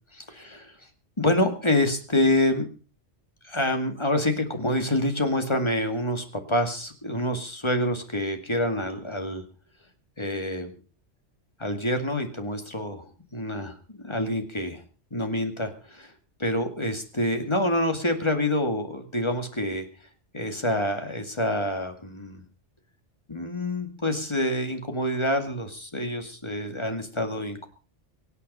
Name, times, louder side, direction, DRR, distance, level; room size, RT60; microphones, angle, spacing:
voice 1, 0.1-0.8 1.2-2.7 3.4-9.4 10.2-10.7 11.6-14.8 15.1-16.1 16.4-19.9 20.3-22.4 23.3-27.7, left 1 dB, 25° left, 6 dB, 2.1 m, -27 dB
24.0 x 8.3 x 5.4 m, 0.36 s
omnidirectional pair, 1.2 m